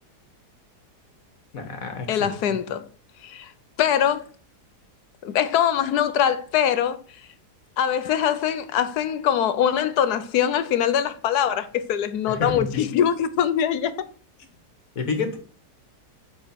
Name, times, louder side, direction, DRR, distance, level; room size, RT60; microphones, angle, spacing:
voice 1, 1.5-2.6 12.3-12.9 15.0-15.4, left 4 dB, 55° left, 1.9 m, -29 dB
voice 2, 2.1-2.9 3.2-3.5 3.8-4.2 5.2-7.0 7.8-13.9, left 9 dB, 70° left, 1.3 m, -23 dB
9.1 x 4.4 x 5.8 m
omnidirectional pair, 1.8 m